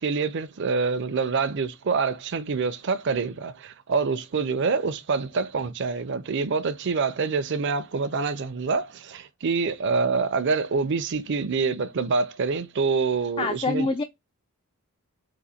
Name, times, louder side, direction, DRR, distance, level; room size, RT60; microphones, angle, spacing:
voice 1, 0.0-13.9, right 4 dB, 55° right, 0.5 m, -26 dB
voice 2, 13.4-14.0, left 3 dB, 25° left, 0.3 m, -25 dB
4.0 x 2.6 x 4.3 m
head